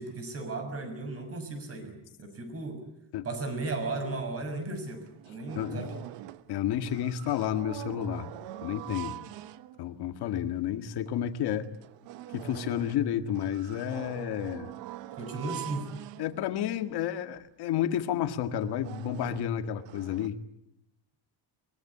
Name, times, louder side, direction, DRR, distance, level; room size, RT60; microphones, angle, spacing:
voice 1, 0.0-2.8 3.2-5.9 15.1-15.9, right 3 dB, 30° right, 7 dB, 6.4 m, -35 dB
sound 1, 4.5-4.6 4.9-6.5 6.8-10.0 10.6-10.7 11.1-11.2 11.6-16.8 17.4-17.5 17.8-18.0 18.4-20.3, right 14 dB, 80° right, 1.2 m, -44 dB
voice 2, 5.6-5.9 6.5-8.3 8.6-9.2 9.8-11.7 12.3-14.7 16.2-20.4, left 10 dB, 65° left, 8 dB, 2.0 m, -31 dB
23.0 x 22.0 x 9.9 m, 0.82 s
cardioid pair, 160°, 43 cm